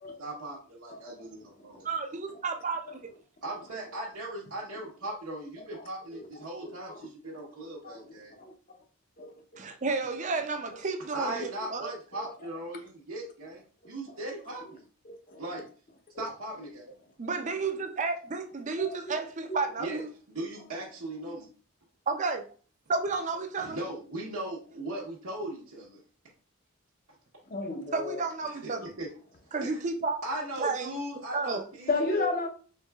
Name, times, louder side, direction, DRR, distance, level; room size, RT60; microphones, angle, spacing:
voice 1, 0.2-1.8 3.4-8.3 11.1-13.6 13.9-14.6 15.4-15.6 16.2-16.8 19.8-20.0 20.3-21.5 23.6-25.9 28.6-29.1 29.6-29.7 30.2-31.9 32.1-32.3, right 1 dB, 75° right, 1.0 m, -38 dB
voice 2, 1.8-3.0 9.6-11.9 17.2-20.1 22.1-22.4 22.9-23.8 27.9-28.9 29.5-30.2 30.6-31.0 31.3-31.7, right 4 dB, 35° right, 0.5 m, -32 dB
voice 3, 5.7-7.5 7.8-8.1 8.4-8.5 9.2-9.3 14.1-14.2 14.5-14.6 15.0-15.4 16.1-16.3 18.9-19.1 27.5-28.2 31.9-32.5, left 3 dB, 40° left, 0.7 m, -34 dB
4.5 x 3.7 x 2.3 m
head